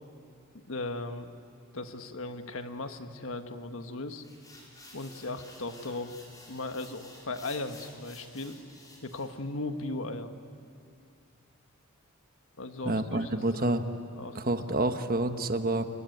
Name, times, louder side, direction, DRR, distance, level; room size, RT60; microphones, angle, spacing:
voice 1, 0.5-1.3 1.7-4.2 4.9-6.1 6.5-8.6 9.0-10.3 12.6-13.7 14.2-14.5, left 2 dB, 65° left, 7 dB, 1.5 m, -37 dB
sound 1, 4.2-9.3, left 2 dB, 15° left, 4.8 m, -52 dB
voice 2, 12.8-13.8 14.3-15.8, right 2 dB, 40° right, 7 dB, 1.3 m, -28 dB
29.5 x 21.5 x 9.3 m, 2.4 s
head